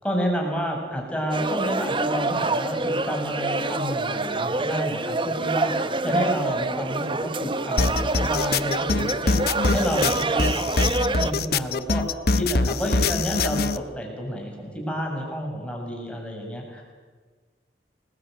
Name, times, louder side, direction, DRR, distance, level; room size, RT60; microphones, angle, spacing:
voice 1, 0.0-9.4 9.7-16.8, equal, 5° left, 1 dB, 6.9 m, -30 dB
sound 1, 1.3-11.3, right 3 dB, 30° right, 1.1 m, -26 dB
sound 2, 7.8-13.8, left 3 dB, 60° left, 1.0 m, -23 dB
29.5 x 21.0 x 9.2 m, 1.4 s
head